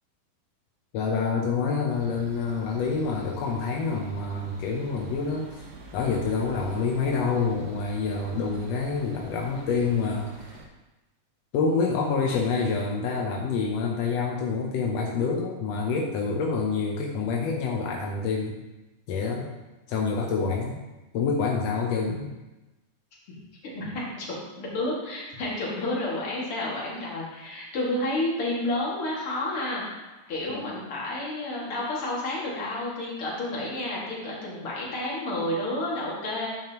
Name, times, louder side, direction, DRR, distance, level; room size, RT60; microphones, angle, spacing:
voice 1, 0.9-5.7 5.9-10.6 11.5-18.6 19.1-19.5 19.9-20.8 21.1-22.3 30.5-30.8, left 4 dB, 75° left, 0 dB, 1.5 m, -27 dB
sound 1, 1.9-10.7, right 3 dB, 85° right, 2.7 m, -46 dB
voice 2, 23.7-29.8 30.3-36.5, left 1 dB, 45° left, -5 dB, 2.6 m, -30 dB
9.1 x 7.3 x 2.9 m, 1.1 s
omnidirectional pair, 3.8 m